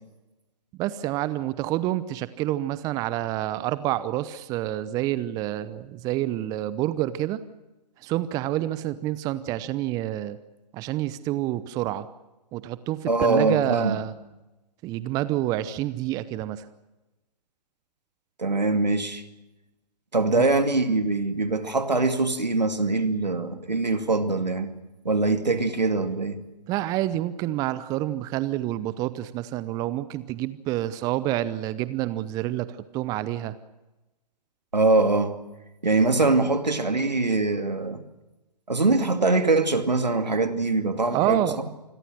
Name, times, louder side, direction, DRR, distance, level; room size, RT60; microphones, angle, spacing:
voice 1, 0.8-7.4 8.0-10.4 10.7-12.1 12.5-14.1 14.8-16.7 20.3-20.5 26.7-33.6 41.1-41.6, right 14 dB, 15° right, 0.7 m, -28 dB
voice 2, 13.1-14.0 18.4-19.2 20.1-24.7 25.0-26.4 34.7-35.4 35.8-38.0 38.7-41.4, right 3 dB, 85° right, 2.4 m, -23 dB
27.5 x 21.5 x 6.4 m
figure-of-eight pair, 130°, 21 cm